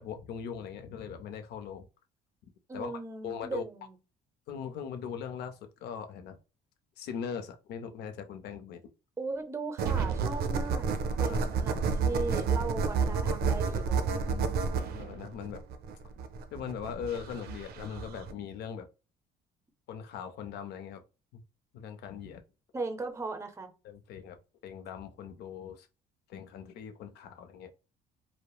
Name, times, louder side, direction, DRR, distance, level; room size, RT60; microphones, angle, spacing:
voice 1, 0.0-1.9 2.7-2.9 3.2-3.6 4.5-6.4 7.0-8.8 11.2-11.4 14.1-14.6 14.9-15.6 16.5-18.9 19.9-21.0 21.3-21.4 21.7-22.4 23.8-24.4 24.6-25.9 26.3-27.7, left 7 dB, 75° left, 0.5 m, -40 dB
voice 2, 2.7-4.0 9.2-10.9 11.2-14.1 22.7-23.7, right 3 dB, 15° right, 0.6 m, -37 dB
sound 1, 9.8-18.3, right 5 dB, 65° right, 0.4 m, -30 dB
2.9 x 2.0 x 2.2 m
cardioid pair, 110°, 17 cm